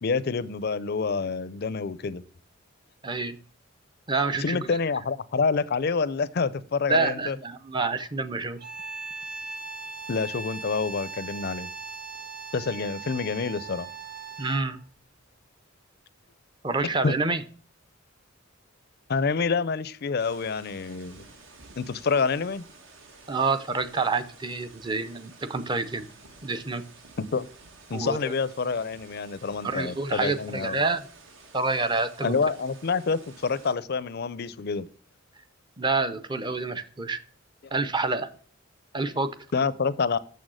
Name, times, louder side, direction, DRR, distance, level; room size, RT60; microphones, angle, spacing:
voice 1, 0.0-2.2 4.4-7.4 10.1-11.7 12.5-13.9 17.0-17.1 19.1-21.2 21.8-22.6 27.2-27.5 27.9-30.8 32.2-34.9 39.5-40.2, left 4 dB, 50° left, 0.5 m, -27 dB
voice 2, 3.0-3.4 4.1-4.6 6.9-8.6 14.4-14.8 16.6-17.4 23.3-26.1 26.4-26.8 27.9-28.3 29.6-31.1 31.5-32.4 35.8-37.2 37.7-38.3 38.9-39.4, right 3 dB, 20° right, 0.6 m, -27 dB
sound 1, 8.6-14.8, right 4 dB, 45° right, 1.1 m, -39 dB
sound 2, 20.2-33.7, right 3 dB, 70° right, 1.3 m, -52 dB
6.8 x 6.4 x 6.2 m
head